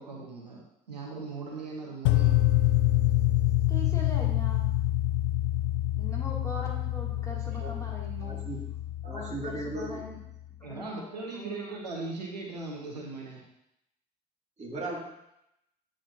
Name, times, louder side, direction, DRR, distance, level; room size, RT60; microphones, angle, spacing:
voice 1, 0.0-2.4 10.6-13.4, right 3 dB, 85° right, -1 dB, 0.9 m, -39 dB
sound 1, 2.0-10.2, left 14 dB, 60° left, 0.4 m, -27 dB
voice 2, 3.7-4.7 6.0-8.4 9.1-10.2 10.7-12.1, left 1 dB, 15° left, -3 dB, 2.7 m, -42 dB
voice 3, 8.2-8.6 9.0-9.9 14.6-15.0, right 2 dB, 35° right, -2 dB, 2.3 m, -36 dB
8.6 x 7.4 x 2.8 m, 0.81 s
figure-of-eight pair, 45°, 21 cm